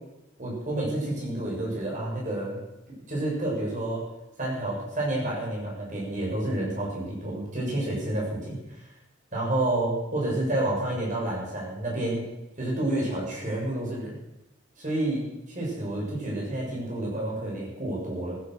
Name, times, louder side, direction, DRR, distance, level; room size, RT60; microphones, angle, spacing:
voice 1, 0.4-2.6 3.1-4.0 4.4-8.6 9.3-12.3 12.6-14.2 14.8-18.4, right 1 dB, 40° right, -3 dB, 7.0 m, -29 dB
16.0 x 12.5 x 6.5 m, 0.97 s
head